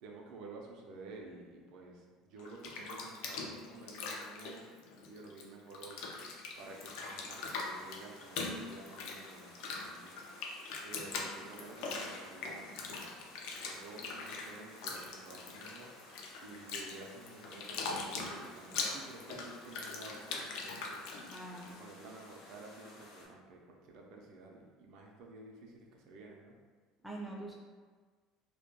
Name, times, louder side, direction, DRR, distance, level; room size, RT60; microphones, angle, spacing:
voice 1, 0.0-4.7 5.1-6.0 6.3-10.2 10.8-13.1 13.6-15.9 16.4-21.1 21.8-26.6, right 3 dB, 60° right, 0 dB, 0.4 m, -51 dB
Bathtub (filling or washing), 2.4-5.4 5.7-21.7, left 4 dB, 70° left, 0.3 m, -42 dB
sound 1, 6.5-23.3, left 2 dB, 90° left, 0.7 m, -56 dB
voice 2, 21.2-21.8 27.0-27.5, right 2 dB, 5° right, -3 dB, 0.4 m, -44 dB
2.2 x 2.1 x 2.9 m, 1.5 s
cardioid pair, 145°, 0 cm